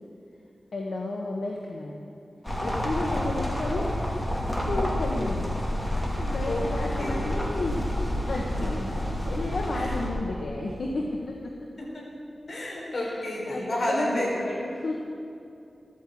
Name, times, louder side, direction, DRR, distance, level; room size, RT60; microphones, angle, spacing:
voice 1, 0.7-2.0 2.6-3.9 4.7-5.6 6.1-7.9 8.3-8.9 9.3-11.7 12.9-13.1 13.5-15.0, left 2 dB, 75° left, -1 dB, 1.3 m, -32 dB
sound 1, 2.4-10.1, left 1 dB, 15° left, 2.5 m, -29 dB
voice 2, 11.8-12.1 12.5-14.3, left 1 dB, 55° left, -3 dB, 4.1 m, -31 dB
13.5 x 9.2 x 8.5 m, 2.6 s
wide cardioid pair, 115°, 0 cm